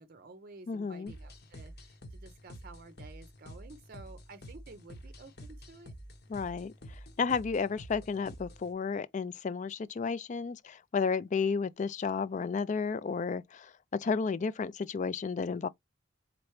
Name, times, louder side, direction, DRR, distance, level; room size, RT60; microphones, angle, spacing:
voice 1, 0.0-5.9, right 3 dB, 50° right, 0.5 m, -52 dB
voice 2, 0.7-1.1 6.3-6.7 7.2-15.7, left 5 dB, 40° left, 0.3 m, -32 dB
sound 1, 1.1-8.7, equal, 55° left, 0.9 m, -49 dB
4.4 x 3.9 x 3.1 m
head